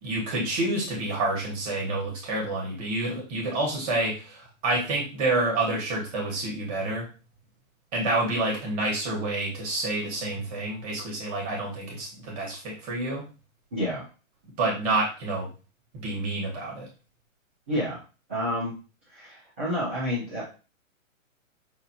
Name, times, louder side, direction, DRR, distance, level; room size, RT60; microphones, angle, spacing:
voice 1, 0.0-7.1 7.9-13.3 14.6-15.5 16.0-16.9, right 2 dB, 30° right, -2 dB, 1.3 m, -28 dB
voice 2, 13.7-14.1 17.7-18.0 18.3-18.7 19.1-20.5, equal, 10° right, -10 dB, 0.4 m, -29 dB
5.4 x 2.5 x 2.8 m, 0.33 s
hypercardioid pair, 150°, 40 cm